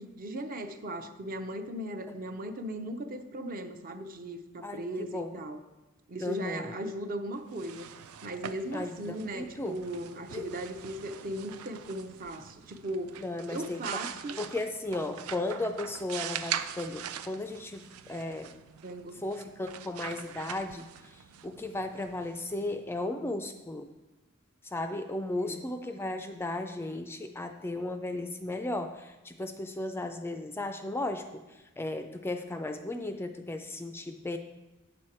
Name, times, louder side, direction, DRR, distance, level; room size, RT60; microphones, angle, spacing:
voice 1, 0.0-5.6 6.1-7.9 8.2-13.2 13.5-14.4 18.8-19.2 25.4-25.6, right 1 dB, 40° right, 8 dB, 0.6 m, -37 dB
voice 2, 4.6-5.3 6.2-6.7 8.7-9.8 10.3-10.5 13.2-14.1 14.4-18.5 19.1-23.9 24.6-34.4, left 2 dB, 10° left, 7 dB, 0.3 m, -35 dB
sound 1, 7.4-23.1, right 9 dB, 85° right, 0.4 m, -43 dB
8.7 x 6.3 x 4.3 m, 1.1 s
head